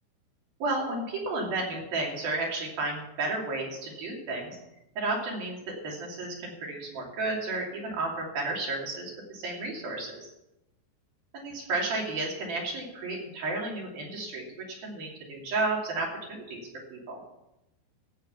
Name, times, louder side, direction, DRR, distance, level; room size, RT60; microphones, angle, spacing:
voice 1, 0.6-4.6 5.0-5.6 5.8-10.3 11.3-16.6 16.9-17.2, right 2 dB, 55° right, -1 dB, 4.4 m, -32 dB
15.5 x 8.1 x 7.0 m, 0.89 s
omnidirectional pair, 5.3 m